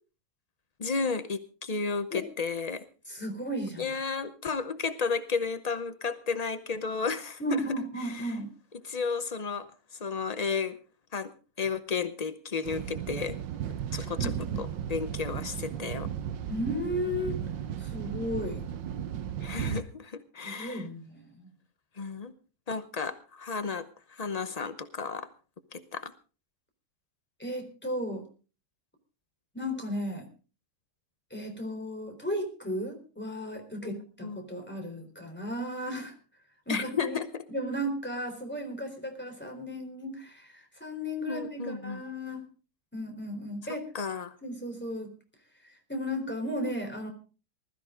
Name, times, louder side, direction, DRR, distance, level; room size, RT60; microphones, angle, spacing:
voice 1, 0.8-2.9 3.8-7.6 8.0-8.4 8.8-10.8 11.1-11.3 11.6-13.4 13.9-14.3 14.6-16.1 19.4-20.8 22.0-22.3 22.7-25.3 25.7-26.1 33.8-34.4 36.7-37.4 41.3-42.0 43.9-44.3, left 5 dB, 65° left, 11 dB, 0.3 m, -33 dB
voice 2, 3.1-3.9 7.4-8.5 14.2-14.6 16.5-17.4 17.8-18.7 20.4-21.5 27.4-28.2 29.5-30.3 31.3-36.1 36.7-37.2 37.5-42.5 42.9-43.8 44.4-45.1 45.6-47.1, equal, 5° left, 3 dB, 3.9 m, -35 dB
sound 1, 12.6-19.8, right 9 dB, 85° right, 1.6 m, -35 dB
20.5 x 13.5 x 3.8 m, 0.36 s
omnidirectional pair, 1.9 m